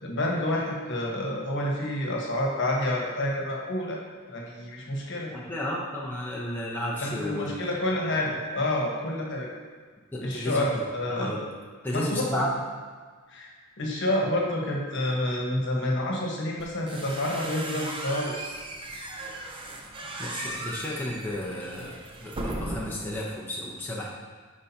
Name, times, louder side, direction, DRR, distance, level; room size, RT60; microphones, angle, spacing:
voice 1, 0.0-4.0 4.3-5.3 7.0-9.5 10.2-11.5 11.9-12.4 13.3-18.5, left 1 dB, 60° left, -2 dB, 1.3 m, -29 dB
voice 2, 5.3-7.7 8.0-8.1 10.1-10.6 11.1-11.4 11.8-12.5 20.2-24.1, left 1 dB, 10° left, -5 dB, 0.8 m, -33 dB
sound 1, 16.6-23.2, right 1 dB, 25° right, 0.6 m, -37 dB
9.9 x 5.0 x 2.8 m, 1.5 s
head